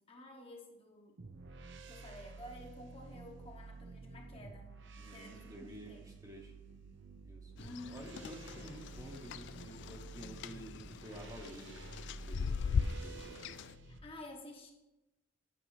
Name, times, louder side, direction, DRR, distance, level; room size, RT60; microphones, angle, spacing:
voice 1, 0.1-1.2 1.9-4.7 5.1-5.5 5.8-6.0 7.6-8.2 12.8-14.7, left 1 dB, 30° left, 1 dB, 1.1 m, -52 dB
sound 1, 1.2-14.0, right 3 dB, 60° right, 0.7 m, -51 dB
voice 2, 5.0-6.5 7.2-7.5 7.9-13.6, right 1 dB, 15° right, 1 dB, 1.0 m, -51 dB
sound 2, 7.6-13.7, left 6 dB, 60° left, 0.3 m, -40 dB
8.9 x 5.3 x 4.7 m, 1.0 s
head